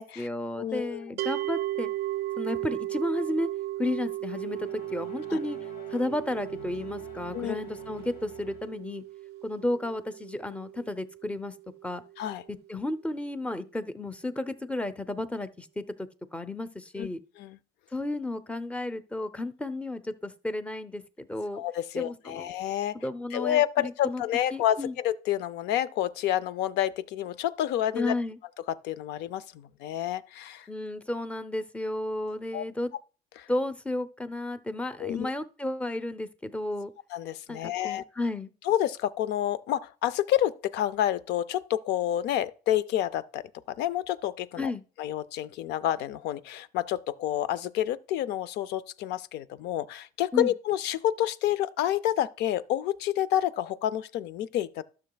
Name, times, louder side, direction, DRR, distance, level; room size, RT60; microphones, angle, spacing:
voice 1, 0.0-1.9 2.4-3.5 3.8-5.6 5.9-9.0 9.4-11.5 11.8-12.0 12.5-17.2 17.9-21.6 21.9-22.5 22.9-24.2 24.5-24.9 28.0-28.4 30.7-32.9 33.5-36.9 37.5-38.5 44.6-44.8 50.3-50.5, left 1 dB, 5° left, 0.6 m, -33 dB
voice 2, 0.5-1.1 5.3-5.4 7.3-7.6 12.2-12.4 17.0-17.1 17.4-17.6 21.5-23.0 23.3-28.1 28.8-30.7 32.5-32.6 33.4-33.5 35.0-35.3 37.1-38.0 38.7-43.4 43.7-44.7 45.0-54.8, left 12 dB, 85° left, 0.5 m, -29 dB
sound 1, 1.2-12.3, right 15 dB, 75° right, 0.4 m, -36 dB
sound 2, 4.3-8.9, left 6 dB, 60° left, 1.4 m, -50 dB
12.5 x 6.8 x 2.3 m
cardioid pair, 110°, 17 cm